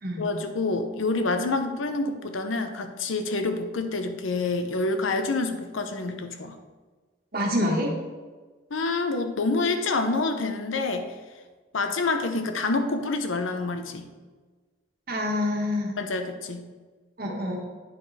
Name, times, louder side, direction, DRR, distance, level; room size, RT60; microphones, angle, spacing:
voice 1, 0.2-6.6 8.7-11.1 11.7-14.1 16.0-16.6, left 3 dB, 85° left, 7 dB, 0.8 m, -27 dB
voice 2, 7.3-7.9 15.1-16.0 17.2-17.6, left 1 dB, 50° right, 0 dB, 1.5 m, -26 dB
9.1 x 5.1 x 4.2 m, 1.4 s
head